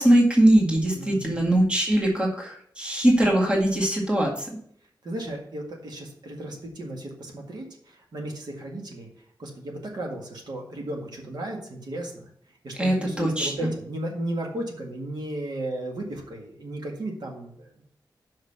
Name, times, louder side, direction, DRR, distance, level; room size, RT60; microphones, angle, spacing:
voice 1, 0.0-4.3 12.8-13.7, right 1 dB, 15° right, -2 dB, 1.8 m, -21 dB
voice 2, 0.9-1.5 5.0-9.1 9.4-12.1 12.6-17.8, right 1 dB, 65° right, 0 dB, 1.8 m, -35 dB
5.8 x 5.6 x 6.9 m, 0.65 s
wide cardioid pair, 140°, 8 cm